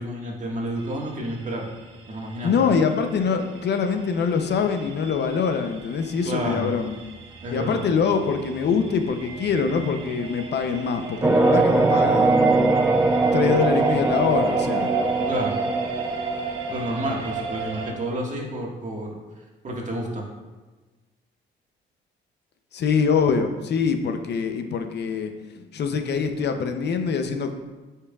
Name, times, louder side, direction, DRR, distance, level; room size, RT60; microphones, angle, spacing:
voice 1, 0.0-1.7 2.1-2.8 6.2-6.7 7.4-7.8 13.5-13.6 15.3-15.5 16.7-19.2 19.6-20.2, right 1 dB, 40° right, -2 dB, 1.7 m, -30 dB
sound 1, 0.8-17.9, right 5 dB, 85° right, 1.2 m, -33 dB
voice 2, 2.4-6.9 7.5-12.8 13.3-14.9 22.7-27.5, left 6 dB, 60° left, 7 dB, 0.7 m, -24 dB
sound 2, 11.2-16.6, right 3 dB, 10° right, 0.4 m, -21 dB
8.2 x 5.6 x 2.4 m, 1.2 s
cardioid pair, 90°, 20 cm